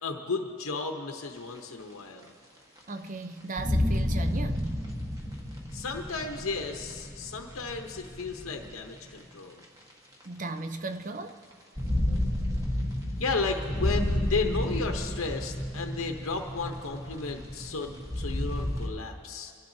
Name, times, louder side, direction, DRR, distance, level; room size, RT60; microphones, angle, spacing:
voice 1, 0.0-2.3 5.7-9.6 13.2-19.5, left 4 dB, 85° left, 0.9 m, -33 dB
sound 1, 1.3-1.4 2.1-2.2 2.8-2.9 3.6-8.7 9.6-9.7 11.5-18.9, left 1 dB, 15° right, 1.4 m, -31 dB
voice 2, 2.9-4.9 10.2-11.4 12.1-12.4, right 2 dB, 40° right, 0.5 m, -36 dB
26.5 x 11.5 x 2.7 m
head